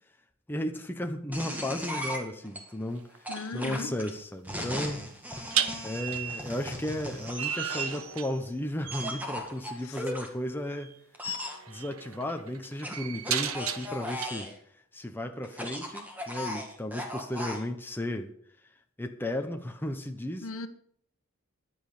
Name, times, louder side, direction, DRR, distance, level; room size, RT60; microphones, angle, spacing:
voice 1, 0.5-5.1 5.8-10.9 11.7-14.5 14.9-18.3 19.0-20.5, left 1 dB, 10° left, 1.0 m, -34 dB
sound 1, 1.3-2.6 3.2-8.1 8.9-10.3 11.1-11.6 12.8-14.5 15.4-17.6, left 1 dB, 10° right, 2.1 m, -37 dB
sound 2, 2.9-3.2 5.5-8.6 8.8-9.3 10.8-10.9 11.4-14.3, right 9 dB, 75° right, 1.2 m, -34 dB
voice 2, 3.3-4.0 9.8-10.0 11.3-11.5 20.4-20.7, left 3 dB, 75° left, 1.2 m, -38 dB
15.0 x 10.5 x 5.1 m
head